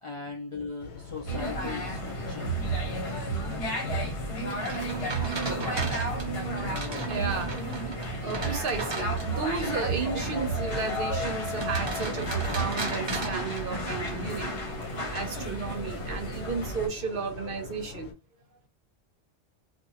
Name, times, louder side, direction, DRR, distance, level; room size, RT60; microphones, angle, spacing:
voice 1, 0.0-2.5, left 4 dB, 35° left, 0.5 m, -38 dB
sound 1, 0.8-18.1, left 4 dB, 85° left, 0.9 m, -44 dB
sound 2, 1.3-16.9, right 1 dB, 70° left, 1.2 m, -32 dB
sound 3, 4.5-9.5 11.5-14.2, right 3 dB, 40° right, 0.4 m, -37 dB
voice 2, 7.1-7.6 8.2-14.6 15.1-18.1, right 5 dB, 60° right, 0.8 m, -33 dB
2.6 x 2.4 x 2.8 m
omnidirectional pair, 1.1 m